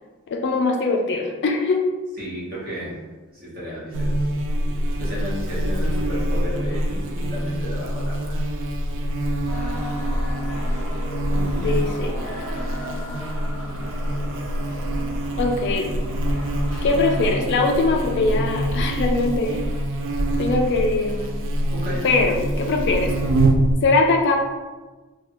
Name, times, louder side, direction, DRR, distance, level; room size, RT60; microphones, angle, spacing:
voice 1, 0.3-1.8 11.6-12.2 15.4-15.9 16.8-19.6 20.4-21.4 22.0-23.1 23.8-24.4, left 3 dB, 50° left, 3 dB, 0.3 m, -21 dB
voice 2, 2.2-2.9 3.4-4.1 5.0-8.4 11.3-11.7 21.7-22.0, equal, 40° right, -8 dB, 1.2 m, -33 dB
Buzz, 3.9-23.7, right 1 dB, 60° right, 0.4 m, -25 dB
sound 1, 9.5-17.3, equal, 10° left, 0.8 m, -36 dB
3.2 x 2.2 x 2.9 m, 1.2 s
head